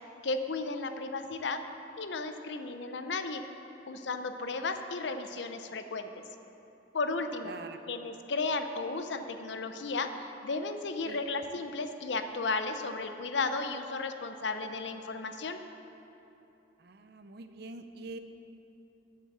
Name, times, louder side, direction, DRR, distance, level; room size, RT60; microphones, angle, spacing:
voice 1, 0.2-1.6 2.0-3.4 3.9-6.1 6.9-7.5 7.9-15.6, left 3 dB, 80° left, 8 dB, 0.6 m, -34 dB
voice 2, 7.4-7.8 11.1-11.3 16.8-18.2, right 3 dB, 60° right, 9 dB, 0.6 m, -44 dB
8.5 x 7.4 x 7.0 m, 3.0 s
head